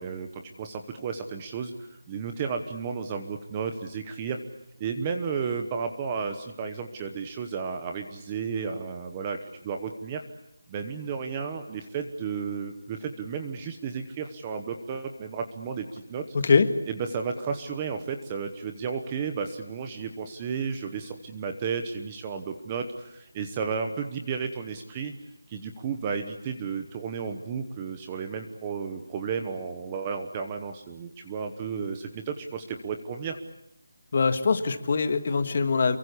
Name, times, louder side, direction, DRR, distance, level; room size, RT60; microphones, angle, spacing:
voice 1, 0.0-1.7 2.1-4.4 4.8-10.2 10.7-16.3 16.9-25.1 25.5-33.4, right 6 dB, 10° right, 6 dB, 1.0 m, -33 dB
voice 2, 34.1-36.0, left 5 dB, 25° left, 9 dB, 1.7 m, -23 dB
28.5 x 23.5 x 8.4 m, 0.83 s
figure-of-eight pair, 180°, 0 cm